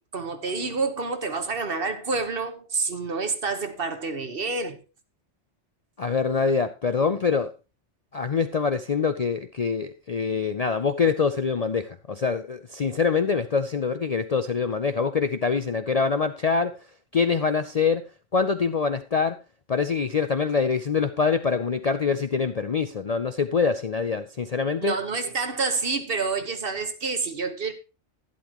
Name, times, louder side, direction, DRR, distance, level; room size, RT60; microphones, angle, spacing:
voice 1, 0.0-4.8 24.8-27.7, right 4 dB, 50° right, 1.4 m, -28 dB
voice 2, 6.0-7.5 8.1-16.7 17.1-18.0 18.3-19.4 19.7-25.0, left 5 dB, 45° left, 0.5 m, -24 dB
11.5 x 11.0 x 3.0 m
omnidirectional pair, 1.2 m